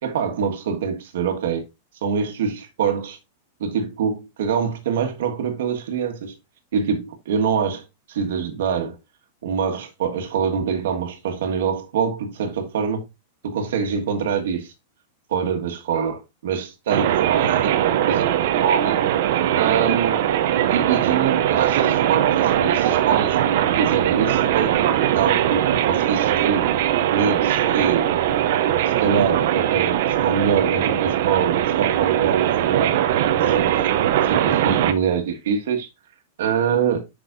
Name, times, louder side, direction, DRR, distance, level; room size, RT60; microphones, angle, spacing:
voice 1, 0.0-1.6 2.0-3.2 3.6-6.3 6.7-9.0 9.4-13.0 13.4-14.7 15.3-19.0 19.5-20.3 20.7-23.4 23.8-24.9 25.1-26.7 27.1-28.1 29.0-33.0 33.3-33.9 34.3-35.9 36.4-37.0, right 7 dB, 70° right, 1.5 m, -24 dB
sound 1, 16.9-34.9, right 11 dB, 50° right, 0.7 m, -20 dB
8.2 x 6.0 x 2.6 m
supercardioid pair, 175°, 0 cm